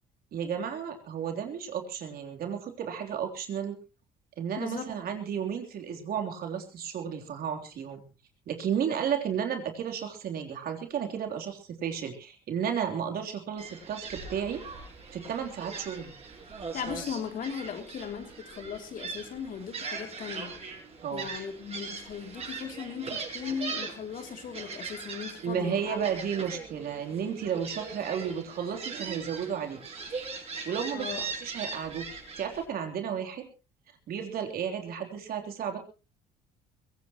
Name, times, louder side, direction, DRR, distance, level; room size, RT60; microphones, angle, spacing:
voice 1, 0.3-3.8 4.4-8.0 8.5-14.6 15.1-16.1 21.0-21.5 25.4-30.0 30.6-33.5 34.1-35.8, right 8 dB, 60° right, 4 dB, 3.4 m, -33 dB
voice 2, 4.6-4.9 16.7-20.5 21.1-26.0 30.9-31.2, left 7 dB, 55° left, 5 dB, 3.1 m, -37 dB
Gull seagull, 13.6-32.6, right 4 dB, 35° right, 7.4 m, -40 dB
21.5 x 17.0 x 3.0 m, 0.32 s
cardioid pair, 110°, 17 cm